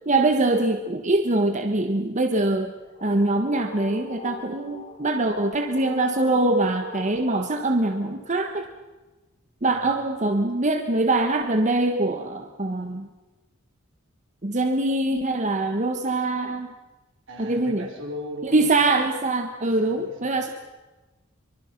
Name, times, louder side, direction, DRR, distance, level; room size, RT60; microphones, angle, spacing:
voice 1, 0.0-2.7 3.0-8.7 9.6-13.1 14.4-16.7 17.4-17.9 18.4-20.5, right 2 dB, 35° right, 6 dB, 1.2 m, -23 dB
sound 1, 2.6-8.7, left 1 dB, 40° left, 3.3 m, -42 dB
voice 2, 17.3-18.7 19.5-20.4, equal, 60° right, 1 dB, 5.5 m, -38 dB
24.5 x 24.5 x 5.9 m, 1.2 s
head